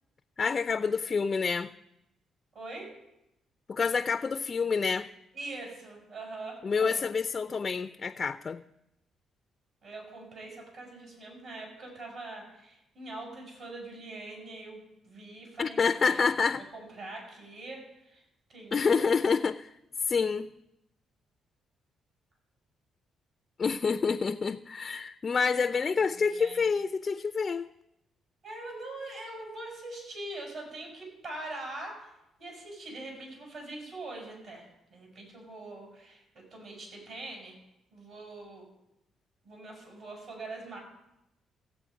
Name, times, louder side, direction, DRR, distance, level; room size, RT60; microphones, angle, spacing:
voice 1, 0.4-1.7 3.7-5.1 6.6-8.6 15.6-16.6 18.7-19.7 20.1-20.5 23.6-27.7, left 5 dB, 40° left, 10 dB, 0.4 m, -28 dB
voice 2, 2.5-2.9 5.3-7.0 9.8-16.3 16.6-18.2 18.5-19.0 26.1-26.6 28.4-32.1 32.4-37.5 37.9-38.7 39.4-40.8, right 2 dB, 60° right, 0 dB, 5.9 m, -43 dB
16.0 x 8.2 x 5.1 m, 0.87 s
cardioid pair, 90°, 0 cm